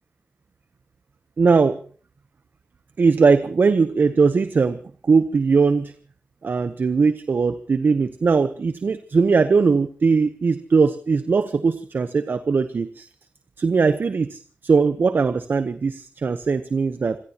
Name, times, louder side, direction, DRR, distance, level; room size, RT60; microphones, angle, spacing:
voice 1, 1.4-1.8 3.0-5.9 6.4-13.1 13.6-17.2, right 4 dB, 65° right, 11 dB, 0.9 m, -20 dB
27.0 x 17.0 x 3.0 m, 0.42 s
cardioid pair, 50°, 4 cm